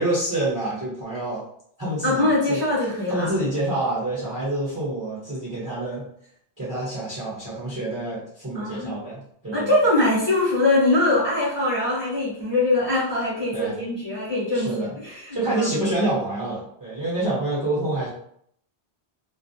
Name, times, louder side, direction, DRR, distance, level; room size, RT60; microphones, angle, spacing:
voice 1, 0.0-1.4 1.8-2.6 3.1-6.0 6.6-9.7 13.5-13.8 14.5-14.9 15.3-18.1, right 1 dB, 20° right, -8 dB, 0.7 m, -27 dB
voice 2, 2.0-3.3 8.5-9.0 9.5-15.7, left 2 dB, 25° left, -9 dB, 0.8 m, -22 dB
2.3 x 2.0 x 2.6 m, 0.67 s
omnidirectional pair, 1.1 m